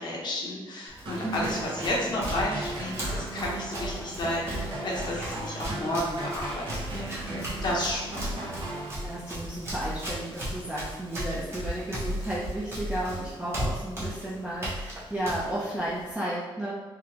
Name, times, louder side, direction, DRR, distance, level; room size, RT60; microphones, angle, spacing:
voice 1, 0.0-8.5, left 1 dB, 50° left, -3 dB, 0.7 m, -32 dB
Run, 0.9-16.1, equal, 25° right, 1.1 m, -37 dB
sound 1, 1.1-9.4, right 2 dB, 60° right, 0.9 m, -37 dB
voice 2, 1.2-1.6 2.1-2.3 5.1-5.4 5.8-5.9 7.1-7.7 9.0-16.7, right 1 dB, 10° right, -7 dB, 0.5 m, -34 dB
3.8 x 3.0 x 2.9 m, 1.2 s
wide cardioid pair, 160°, 10 cm